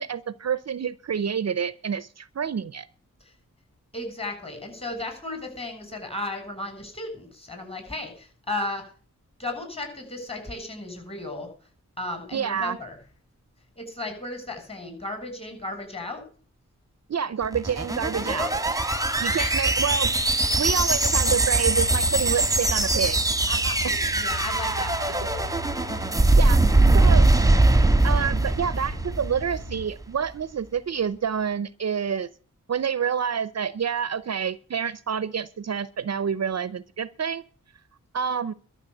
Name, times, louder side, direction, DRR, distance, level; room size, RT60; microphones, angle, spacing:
voice 1, 0.0-2.9 12.3-12.8 17.1-18.5 19.2-20.2 20.5-23.2 23.8-23.9 25.2-25.3 26.4-26.6 26.9-27.3 28.0-32.3 32.7-37.4 38.1-38.5, right 7 dB, 55° right, 17 dB, 0.7 m, -28 dB
voice 2, 3.9-8.8 9.4-11.5 12.0-13.0 13.8-16.2 23.5-25.2, left 2 dB, 20° left, 5 dB, 7.1 m, -35 dB
sound 1, 17.4-29.8, right 2 dB, 10° right, 1.4 m, -22 dB
sound 2, 21.0-29.9, right 1 dB, 50° left, 5.1 m, -38 dB
12.5 x 7.0 x 9.8 m, 0.40 s
wide cardioid pair, 80°, 32 cm